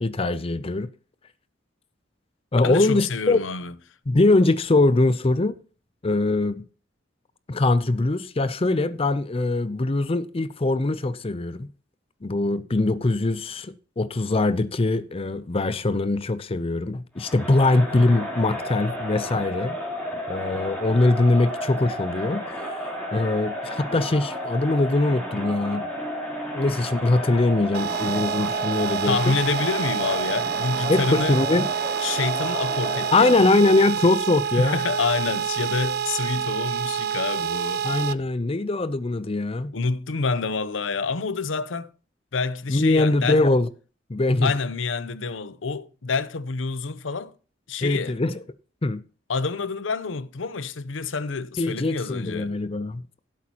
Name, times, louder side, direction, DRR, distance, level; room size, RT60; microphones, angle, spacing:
voice 1, 0.0-0.9 2.5-3.4 4.1-5.6 6.0-6.6 7.5-11.7 12.2-19.8 20.3-25.9 26.5-29.4 30.9-31.7 33.1-34.8 37.8-39.7 42.7-43.7 44.1-44.5 47.8-48.3 48.8-49.0 51.6-53.0, left 2 dB, 30° left, 0.5 m, -22 dB
voice 2, 2.6-3.7 29.1-31.4 32.0-33.7 34.6-37.9 39.7-41.9 42.3-43.4 44.4-47.3 47.7-48.2 49.3-52.5, left 4 dB, 75° left, 0.7 m, -27 dB
Crowd, 17.2-33.3, equal, 5° left, 3.6 m, -32 dB
sound 1, 27.7-38.1, right 8 dB, 55° right, 0.5 m, -27 dB
16.0 x 8.3 x 2.9 m
head